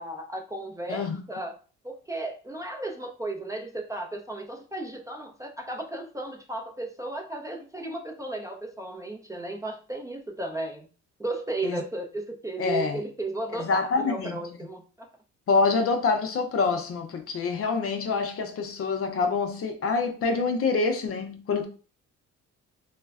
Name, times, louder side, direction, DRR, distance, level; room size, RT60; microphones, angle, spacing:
voice 1, 0.0-1.6 1.8-10.9 11.2-14.8, right 2 dB, 10° right, 0.4 m, -34 dB
voice 2, 12.6-13.0 13.6-14.4 15.5-21.7, left 4 dB, 50° left, 0.5 m, -26 dB
3.2 x 2.0 x 2.3 m
cardioid pair, 90°, 30 cm